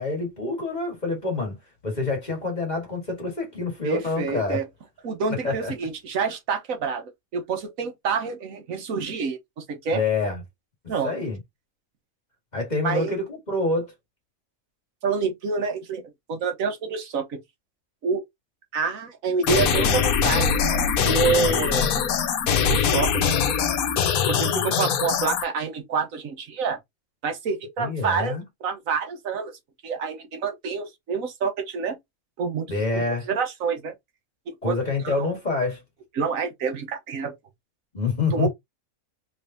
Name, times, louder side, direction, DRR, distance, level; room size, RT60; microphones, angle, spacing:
voice 1, 0.0-1.5 1.8-4.6 5.4-5.7 9.9-10.4 11.0-11.4 12.5-13.9 27.8-28.4 32.7-33.3 34.6-35.8 37.9-38.5, left 3 dB, 30° left, 1.8 m, -26 dB
voice 2, 3.8-4.7 5.0-7.0 7.3-10.0 10.9-11.1 12.8-13.1 15.0-17.4 18.0-18.2 18.7-22.0 22.7-23.2 24.3-26.8 27.2-29.5 29.8-32.0 32.4-33.9 34.6-34.8 35.0-35.3 36.1-37.3 38.3-38.5, right 5 dB, 70° right, 1.3 m, -27 dB
sound 1, 19.4-25.4, left 7 dB, 85° left, 1.2 m, -22 dB
3.9 x 3.4 x 2.6 m
omnidirectional pair, 1.5 m